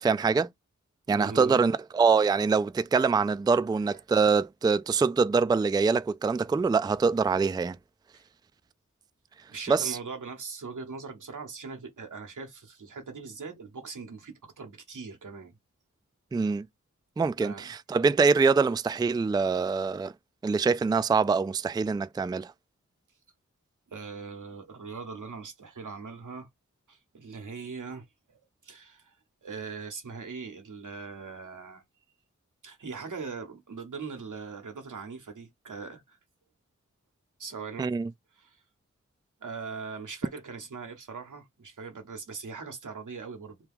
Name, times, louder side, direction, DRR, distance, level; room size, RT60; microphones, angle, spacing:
voice 1, 0.0-0.5 1.1-7.8 9.7-10.0 16.3-16.7 17.2-20.1 20.4-22.5 37.8-38.1, right 5 dB, 15° right, 0.3 m, -24 dB
voice 2, 1.1-1.7 3.9-4.0 8.1-8.2 9.5-15.5 17.4-17.8 23.9-26.5 26.9-29.2 29.4-31.8 32.6-36.2 37.4-37.9 38.3-38.6 39.4-43.6, right 5 dB, 85° right, 1.1 m, -41 dB
2.9 x 2.3 x 3.5 m
cardioid pair, 45°, 30 cm